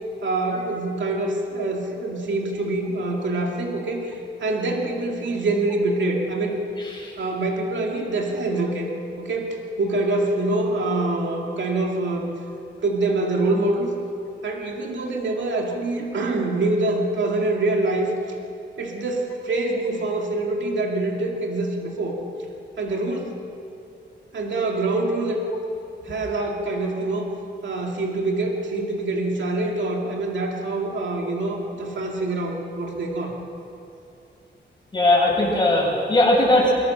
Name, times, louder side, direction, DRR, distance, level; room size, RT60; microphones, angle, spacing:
voice 1, 0.2-6.6 7.2-8.9 9.2-12.3 12.8-13.9 14.4-18.1 18.8-22.2 22.8-23.3 24.3-25.4 26.0-27.3 27.6-33.4, right 2 dB, 75° right, 0 dB, 2.5 m, -25 dB
voice 2, 34.9-36.7, left 1 dB, 25° left, -3 dB, 8.0 m, -19 dB
24.0 x 22.5 x 6.8 m, 2.7 s
wide cardioid pair, 120°, 19 cm